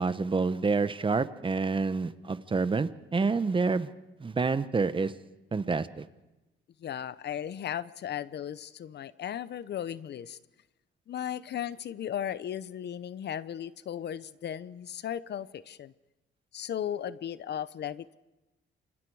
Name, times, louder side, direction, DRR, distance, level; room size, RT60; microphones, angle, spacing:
voice 1, 0.0-3.9 4.2-5.1 5.5-6.0, right 4 dB, 25° right, 14 dB, 1.0 m, -28 dB
voice 2, 6.8-10.4 11.1-15.9 16.5-18.2, left 10 dB, 60° left, 17 dB, 0.8 m, -36 dB
28.5 x 24.0 x 4.8 m, 1.0 s
cardioid pair, 90°, 20 cm